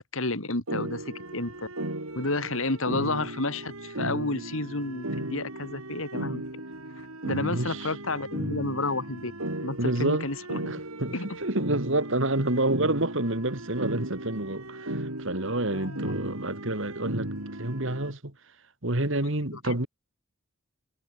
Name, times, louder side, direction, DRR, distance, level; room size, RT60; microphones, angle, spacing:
voice 1, 0.0-1.7 2.2-6.4 7.2-9.3 9.6-10.6 11.1-11.3 15.7-16.1 19.5-19.8, left 2 dB, 65° left, 2.8 m, -31 dB
sound 1, 0.7-18.1, right 1 dB, 75° right, 4.8 m, -36 dB
voice 2, 7.4-7.9 9.8-10.3 10.7-11.1 11.4-17.3 17.6-18.3 18.8-19.9, right 1 dB, 60° right, 2.7 m, -28 dB
head